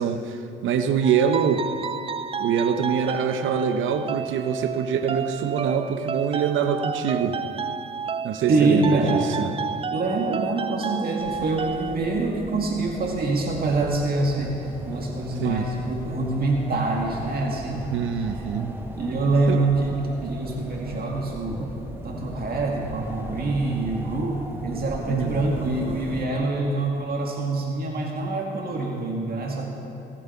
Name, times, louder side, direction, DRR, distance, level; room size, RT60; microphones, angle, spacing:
voice 1, 0.0-1.6 2.4-7.4 8.2-9.5 15.4-15.6 17.9-18.8 19.5-19.6 20.2-20.4 25.1-25.4, right 7 dB, 80° right, 9 dB, 0.8 m, -24 dB
sound 1, 1.0-12.0, right 5 dB, 30° right, 0.4 m, -31 dB
voice 2, 8.5-9.2 9.9-17.9 19.0-29.7, right 2 dB, 50° right, -1 dB, 2.0 m, -25 dB
sound 2, 11.2-26.3, right 1 dB, 10° right, 1.4 m, -38 dB
22.0 x 7.5 x 5.7 m, 2.9 s
cardioid pair, 90°, 20 cm